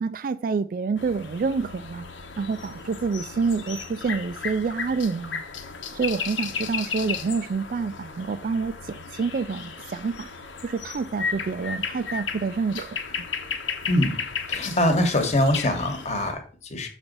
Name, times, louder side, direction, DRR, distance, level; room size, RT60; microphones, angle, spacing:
voice 1, 0.0-2.1 2.4-5.4 5.9-10.3 10.6-13.3, right 4 dB, 45° right, 0.3 m, -28 dB
sound 1, 1.0-16.3, left 6 dB, 85° left, 1.2 m, -34 dB
voice 2, 14.5-16.9, left 1 dB, 35° left, 1.3 m, -23 dB
7.0 x 4.0 x 5.3 m
head